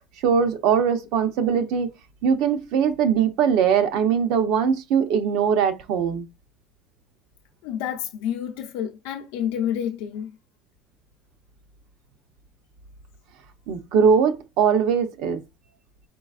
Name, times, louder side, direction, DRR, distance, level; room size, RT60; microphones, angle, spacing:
voice 1, 0.2-1.9 2.2-6.3 13.7-15.4, right 7 dB, 65° right, 0.7 m, -21 dB
voice 2, 7.6-10.4, left 9 dB, 85° left, 0.5 m, -29 dB
4.7 x 3.8 x 2.4 m
cardioid pair, 160°, 0 cm